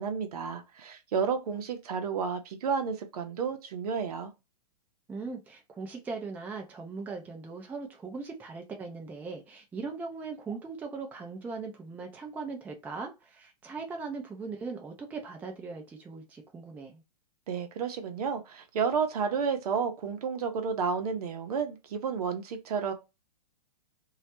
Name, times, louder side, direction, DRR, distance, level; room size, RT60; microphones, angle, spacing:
voice 1, 0.0-4.3 17.5-22.9, right 6 dB, 65° right, 0.6 m, -31 dB
voice 2, 5.1-17.0, right 4 dB, 10° right, 0.4 m, -39 dB
2.3 x 2.0 x 2.8 m
hypercardioid pair, 115°, 21 cm